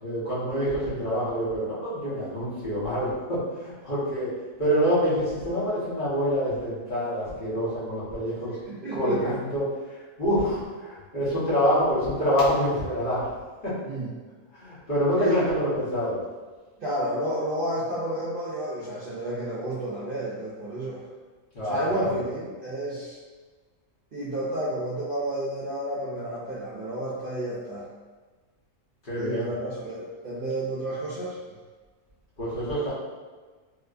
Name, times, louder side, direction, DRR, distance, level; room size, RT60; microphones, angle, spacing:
voice 1, 0.0-4.3 4.6-8.5 8.9-9.7 10.2-13.3 13.6-13.7 14.6-16.2 21.5-22.1 29.0-29.5 32.4-32.9, equal, 40° left, -11 dB, 1.3 m, -26 dB
voice 2, 8.6-9.2 13.8-14.1 15.2-15.4 16.8-21.0 21.6-23.2 24.1-27.9 29.2-31.4, right 1 dB, 55° right, -8 dB, 0.6 m, -31 dB
3.1 x 2.9 x 2.4 m, 1.3 s
omnidirectional pair, 1.4 m